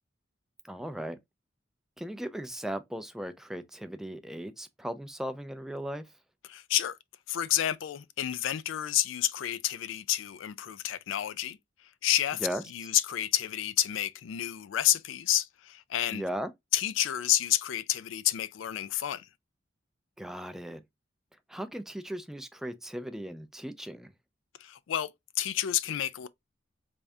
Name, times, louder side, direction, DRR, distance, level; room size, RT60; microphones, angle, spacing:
voice 1, 0.6-1.2 2.0-6.1 12.4-12.6 16.1-16.5 20.2-20.8 21.5-24.1, equal, ahead, 0.3 m, -37 dB
voice 2, 6.4-7.0 7.3-16.2 16.7-19.3 24.6-25.1 25.4-26.3, left 12 dB, 90° left, 0.4 m, -30 dB
3.5 x 2.6 x 3.2 m
head